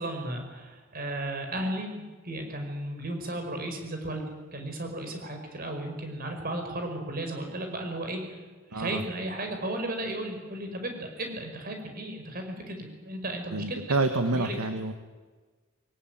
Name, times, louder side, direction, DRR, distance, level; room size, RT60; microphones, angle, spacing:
voice 1, 0.0-8.4 8.7-13.8 14.3-14.5, right 1 dB, 40° right, 4 dB, 5.3 m, -35 dB
voice 2, 8.7-9.0 13.5-14.9, right 2 dB, 85° right, 7 dB, 1.7 m, -28 dB
22.5 x 18.0 x 9.4 m, 1.3 s
head